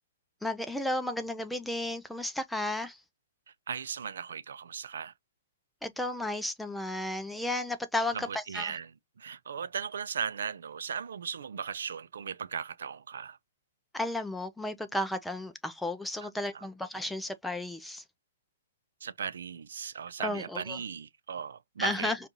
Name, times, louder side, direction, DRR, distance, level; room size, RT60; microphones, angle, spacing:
voice 1, 0.4-3.0 5.8-8.7 13.9-18.0 20.2-20.8 21.8-22.2, left 1 dB, 5° left, 0.5 m, -33 dB
voice 2, 3.5-5.1 8.1-13.4 16.5-16.6 19.0-22.1, right 7 dB, 85° right, 0.5 m, -37 dB
5.1 x 2.5 x 2.8 m
hypercardioid pair, 150°, 0 cm